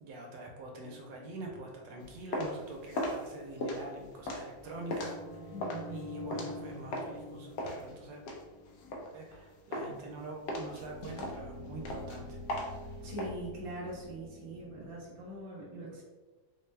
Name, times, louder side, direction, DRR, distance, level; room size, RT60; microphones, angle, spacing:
voice 1, 0.0-5.5 5.9-8.2 9.1-12.4 14.5-14.9, right 2 dB, 75° right, 1 dB, 1.2 m, -45 dB
sound 1, 0.8-2.3 4.5-9.0 10.4-15.4, left 1 dB, 55° right, 1.0 m, -47 dB
sound 2, 2.0-7.2 7.6-9.4 9.7-10.1 10.5-13.3, left 1 dB, 70° left, 1.0 m, -38 dB
voice 2, 5.5-6.1 13.0-16.0, right 1 dB, 30° right, -6 dB, 0.6 m, -42 dB
4.2 x 2.2 x 3.2 m, 1.2 s
omnidirectional pair, 2.2 m